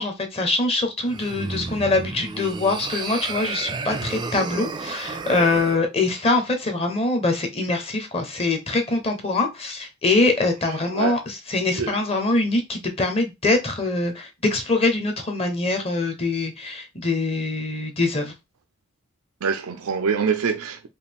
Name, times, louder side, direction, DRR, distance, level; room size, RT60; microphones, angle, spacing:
voice 1, 0.0-18.3, left 2 dB, 25° left, 0.8 m, -23 dB
sound 1, 1.0-5.8, right 4 dB, 20° right, 0.3 m, -32 dB
voice 2, 19.4-20.9, right 6 dB, 80° right, 0.5 m, -25 dB
4.8 x 2.4 x 3.5 m
head